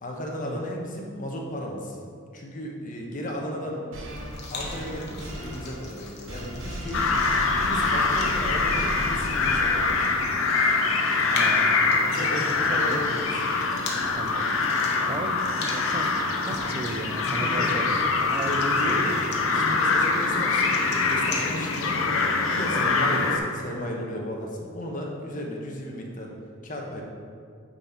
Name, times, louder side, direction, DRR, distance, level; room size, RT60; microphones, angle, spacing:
voice 1, 0.0-2.0 2.3-3.8 4.5-7.1 7.6-10.1 11.9-13.3 15.0-15.1 17.3-17.9 18.4-19.2 19.5-22.0 22.5-26.3 26.6-27.0, equal, 40° left, -1 dB, 1.1 m, -34 dB
sound 1, 3.9-10.3, equal, 70° right, 1.2 m, -36 dB
sound 2, 4.1-21.9, left 3 dB, 55° left, 1.1 m, -41 dB
sound 3, 6.9-23.4, left 4 dB, 85° left, 0.7 m, -24 dB
voice 2, 11.3-11.7 12.7-13.1 14.1-19.0, right 3 dB, 30° right, 8 dB, 0.4 m, -36 dB
8.9 x 4.1 x 4.4 m, 2.2 s
head